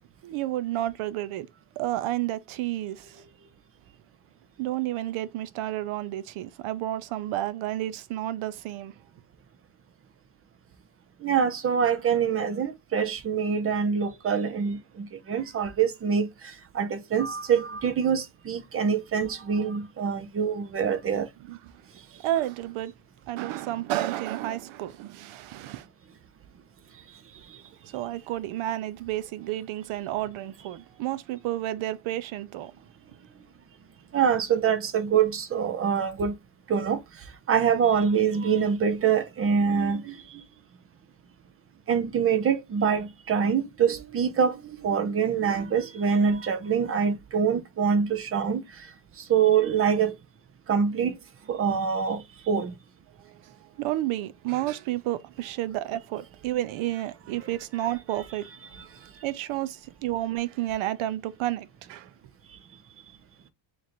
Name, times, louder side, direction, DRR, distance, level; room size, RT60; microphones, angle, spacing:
voice 1, 0.2-1.5 1.8-3.2 4.6-9.0 21.5-21.6 22.2-22.9 23.3-25.9 27.8-32.7 53.2-59.0 59.2-62.1, right 14 dB, 85° right, 0.6 m, -31 dB
voice 2, 11.2-21.3 34.1-36.4 36.7-37.0 37.5-40.4 41.9-48.9 49.2-50.1 50.7-51.2 51.5-52.7, right 7 dB, 30° right, 0.4 m, -25 dB
3.1 x 2.5 x 4.1 m
cardioid pair, 165°, 47 cm